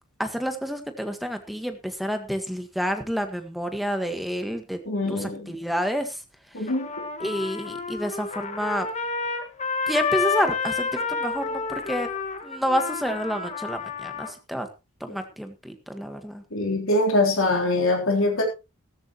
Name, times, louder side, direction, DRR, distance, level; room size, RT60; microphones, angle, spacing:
voice 1, 0.2-4.8 5.1-6.2 6.6-6.7 7.2-8.9 9.9-12.1 12.4-14.7 15.0-16.4, equal, ahead, 7 dB, 1.5 m, -29 dB
voice 2, 4.9-5.5 6.5-6.9 16.5-18.4, left 2 dB, 60° left, 1 dB, 3.5 m, -23 dB
Trumpet, 6.7-14.3, left 5 dB, 30° left, 1.6 m, -30 dB
14.5 x 14.0 x 3.0 m, 0.27 s
head